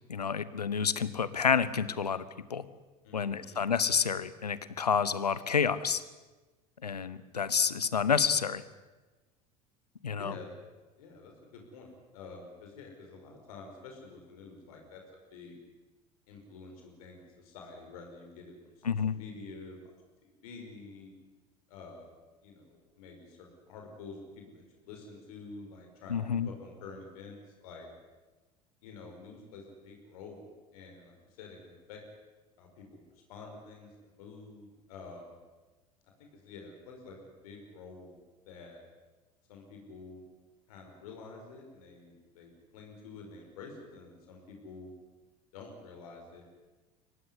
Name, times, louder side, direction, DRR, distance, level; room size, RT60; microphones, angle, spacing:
voice 1, 0.1-2.2 2.5-2.6 3.1-6.0 6.8-8.6 10.0-10.4 18.8-19.1 26.1-26.5, left 6 dB, 85° left, 16 dB, 1.1 m, -29 dB
voice 2, 3.0-3.6 10.2-10.5 11.0-15.0 15.3-15.6 16.3-19.8 20.2-21.1 21.7-26.2 26.5-27.9 28.8-32.0 32.6-35.4 36.3-38.2 38.4-38.8 39.5-40.2 40.7-44.9 45.5-46.5, left 4 dB, 65° left, 2 dB, 5.5 m, -49 dB
24.0 x 18.0 x 9.8 m, 1.2 s
figure-of-eight pair, 70°, 20 cm